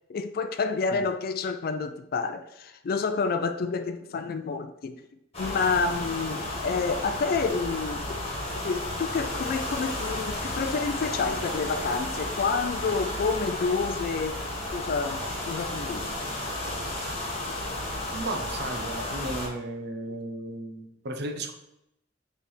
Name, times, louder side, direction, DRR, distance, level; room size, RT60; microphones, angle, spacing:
voice 1, 0.1-5.0 5.4-8.2 8.6-14.4 14.7-15.2 15.5-16.1, left 4 dB, 50° left, 0.4 m, -29 dB
sound 1, 5.3-19.5, left 1 dB, 35° left, 1.9 m, -33 dB
voice 2, 18.1-21.5, right 2 dB, 60° right, 0.7 m, -35 dB
5.5 x 3.3 x 5.6 m
head